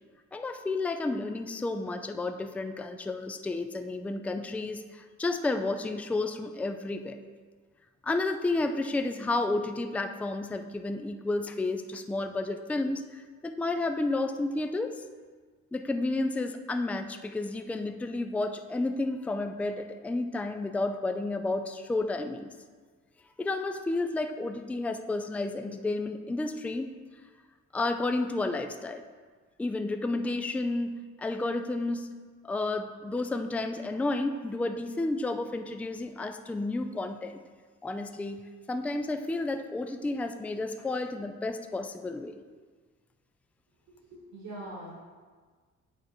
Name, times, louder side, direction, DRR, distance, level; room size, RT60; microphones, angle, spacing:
voice 1, 0.3-7.2 8.0-13.0 13.4-14.9 15.7-22.5 23.4-26.9 27.7-29.0 29.6-32.1 32.4-37.4 37.8-38.4 38.7-42.4, left 2 dB, 5° left, 7 dB, 0.3 m, -31 dB
voice 2, 43.9-44.9, right 1 dB, 85° right, -6 dB, 2.0 m, -43 dB
6.9 x 4.7 x 4.3 m, 1.5 s
cardioid pair, 90°, 30 cm